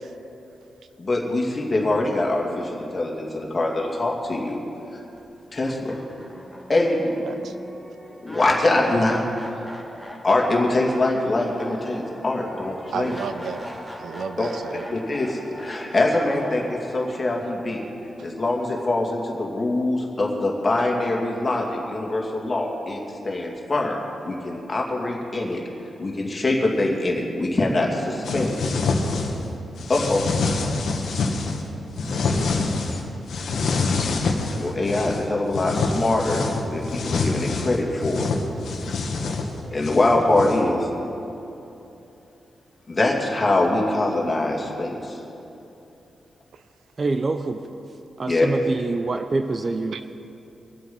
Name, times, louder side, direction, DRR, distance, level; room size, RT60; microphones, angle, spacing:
voice 1, 1.0-4.6 5.5-6.0 6.7-7.2 8.2-9.7 10.2-13.1 14.4-14.5 14.9-17.9 18.2-25.6 26.0-28.7 29.9-30.3 34.6-36.4 36.7-38.3 39.7-40.9 42.9-45.2 48.2-48.5, left 2 dB, 30° left, -1 dB, 2.5 m, -23 dB
sound 1, 5.2-5.3 5.6-18.7, equal, 5° right, 1.9 m, -40 dB
voice 2, 12.9-13.7 14.0-14.8, right 6 dB, 75° right, 10 dB, 0.7 m, -32 dB
sound 2, 28.2-29.5 29.8-31.6 32.0-33.0 33.3-35.2 35.5-40.7, left 3 dB, 75° left, 1.5 m, -26 dB
voice 3, 47.0-47.6 48.2-50.2, right 3 dB, 35° right, 7 dB, 0.6 m, -26 dB
23.5 x 7.9 x 5.5 m, 2.9 s
cardioid pair, 110°, 0 cm